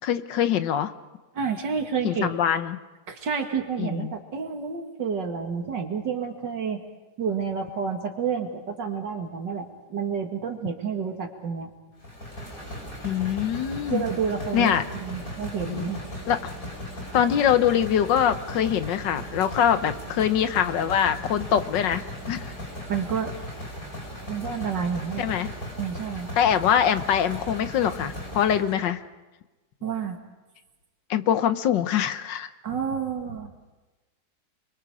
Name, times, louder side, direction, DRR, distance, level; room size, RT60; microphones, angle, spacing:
voice 1, 0.0-0.9 2.0-2.8 3.8-4.1 13.0-14.0 14.5-14.8 15.7-15.8 16.3-16.5 17.1-22.5 25.2-25.5 26.4-29.0 31.1-32.5, left 9 dB, 80° left, 11 dB, 1.6 m, -23 dB
voice 2, 1.3-2.3 3.1-6.8 7.2-11.7 13.9-16.0 22.9-23.3 24.3-25.3 25.8-26.3 29.8-30.2 32.6-33.5, right 6 dB, 75° right, 4 dB, 2.8 m, -29 dB
sound 1, 12.0-28.9, equal, 50° left, 5.5 m, -37 dB
29.5 x 23.0 x 5.0 m, 1.1 s
omnidirectional pair, 1.9 m